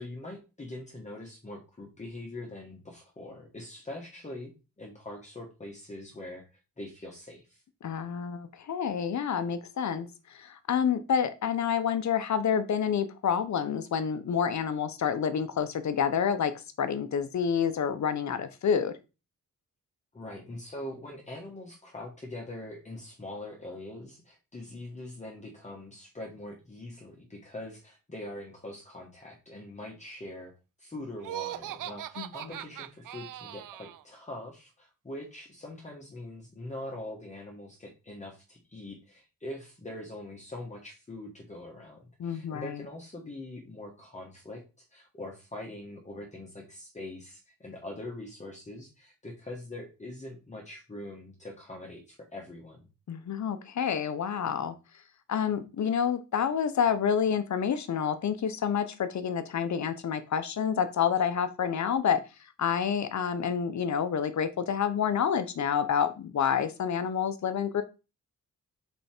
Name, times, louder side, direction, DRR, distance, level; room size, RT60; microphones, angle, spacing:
voice 1, 0.0-4.5 4.8-6.4 6.8-7.6 20.1-30.5 30.8-44.6 44.9-52.9, left 1 dB, 20° left, -1 dB, 1.4 m, -43 dB
voice 2, 7.8-16.5 16.8-18.9 32.2-32.6 42.2-42.8 53.1-54.8 55.3-62.2 62.6-67.8, left 7 dB, 60° left, 11 dB, 0.8 m, -28 dB
Laughter, 31.2-34.0, right 13 dB, 75° right, 0.5 m, -39 dB
5.6 x 4.5 x 4.4 m, 0.30 s
wide cardioid pair, 135°, 32 cm